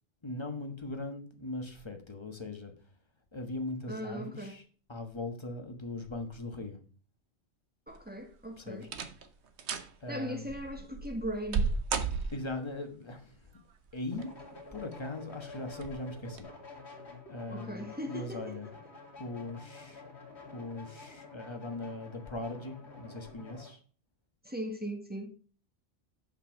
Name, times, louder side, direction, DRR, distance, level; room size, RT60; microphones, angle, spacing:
voice 1, 0.2-2.7 3.3-4.6 4.9-6.8 8.6-8.9 10.0-10.5 12.3-13.5 13.9-14.3 14.7-16.5 17.3-18.7 19.2-20.1 20.5-23.8, left 2 dB, 25° left, 1.3 m, -40 dB
voice 2, 3.9-4.6 7.9-8.9 10.1-11.7 17.5-18.6 24.4-25.3, equal, 10° right, 1.3 m, -38 dB
sound 1, 7.9-8.3 8.8-9.3 9.6-9.9 10.5-12.7 13.9-14.5 14.9-15.0 15.7-16.0 16.3-16.4, right 5 dB, 65° right, 1.1 m, -34 dB
sound 2, 14.1-23.7, left 3 dB, 65° left, 2.3 m, -49 dB
7.3 x 5.6 x 5.8 m
omnidirectional pair, 1.2 m